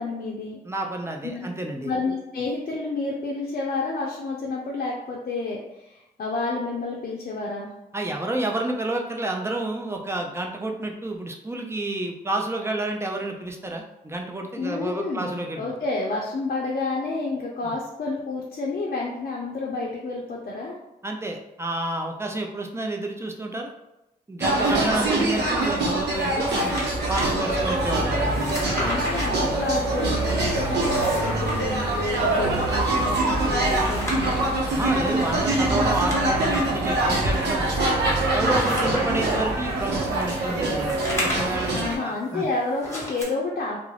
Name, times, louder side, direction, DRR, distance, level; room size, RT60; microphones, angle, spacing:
voice 1, 0.0-0.6 1.2-1.5 1.8-7.7 14.6-20.8 28.8-34.5 41.7-43.8, left 3 dB, 55° left, -3 dB, 0.5 m, -30 dB
voice 2, 0.6-1.9 7.9-15.7 17.6-17.7 21.0-23.7 24.3-28.5 34.7-37.7 38.3-42.5, right 2 dB, 15° right, 2 dB, 0.5 m, -30 dB
sound 1, 24.4-42.0, right 2 dB, 75° right, 0.6 m, -24 dB
sound 2, 26.3-27.3 28.2-29.3 30.6-31.6 33.4-34.5 35.7-36.7 37.2-37.3 38.0-39.4 40.3-41.8 42.8-43.2, equal, 15° left, 1.1 m, -33 dB
2.3 x 2.0 x 3.1 m, 0.91 s
supercardioid pair, 50°, 17 cm